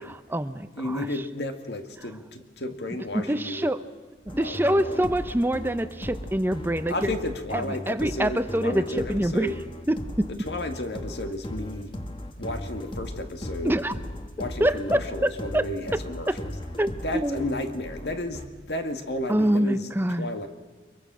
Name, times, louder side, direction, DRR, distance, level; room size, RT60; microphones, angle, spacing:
voice 1, 0.0-1.1 3.1-3.8 4.3-7.1 7.5-9.5 9.9-10.3 13.6-13.9 14.6-16.0 16.3-16.4 16.8-17.5 19.3-20.3, right 1 dB, 10° right, 11 dB, 0.6 m, -26 dB
voice 2, 0.8-3.7 4.4-5.1 6.9-9.6 10.3-11.9 12.4-13.8 14.4-16.5 17.0-19.9 20.2-20.5, left 1 dB, 70° left, 6 dB, 2.0 m, -33 dB
sound 1, 4.3-18.5, left 1 dB, 30° left, 1.6 m, -37 dB
24.0 x 22.5 x 6.2 m, 1.4 s
head